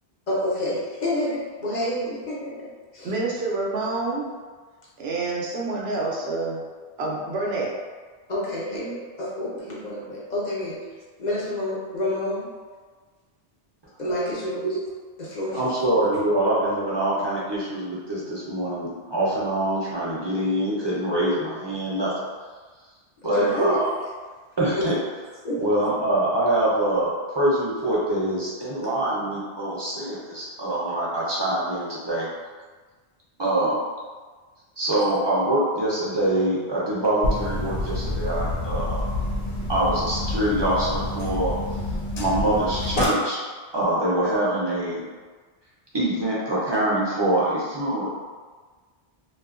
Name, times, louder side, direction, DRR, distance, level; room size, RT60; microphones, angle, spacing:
voice 1, 0.3-2.7 2.9-3.1 8.3-10.8 11.2-12.5 14.0-14.7 15.2-15.6 23.2-23.8 24.7-24.8 25.4-25.7, left 1 dB, 50° left, -7 dB, 0.7 m, -28 dB
voice 2, 3.0-4.3 5.0-6.6 7.0-7.7, right 3 dB, 80° right, -3 dB, 0.8 m, -27 dB
voice 3, 15.5-22.1 23.2-23.9 24.6-25.0 25.6-32.3 33.4-33.8 34.8-39.0 39.7-41.5 42.2-43.4 43.7-45.1 45.9-48.1, right 1 dB, 30° right, -7 dB, 0.5 m, -24 dB
sound 1, 37.2-43.0, left 1 dB, 80° left, 0.8 m, -28 dB
2.7 x 2.4 x 2.4 m, 1.4 s
omnidirectional pair, 1.0 m